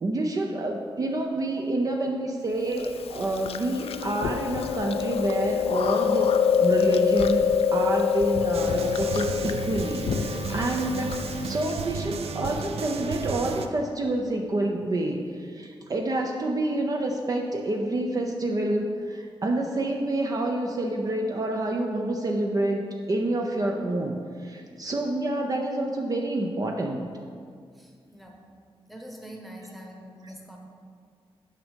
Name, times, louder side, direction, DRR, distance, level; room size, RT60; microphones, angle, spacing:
voice 1, 0.0-6.3 6.6-11.2 11.4-27.1 30.2-30.3, right 1 dB, 40° right, 1 dB, 0.6 m, -28 dB
Chewing mastication, 2.8-11.7, left 7 dB, 75° left, 0.4 m, -25 dB
sound 1, 8.5-13.7, right 5 dB, 85° right, 0.5 m, -34 dB
voice 2, 27.7-28.4 28.9-30.6, equal, ahead, 0 dB, 1.1 m, -44 dB
9.1 x 6.2 x 5.1 m, 2.2 s
wide cardioid pair, 160°, 10 cm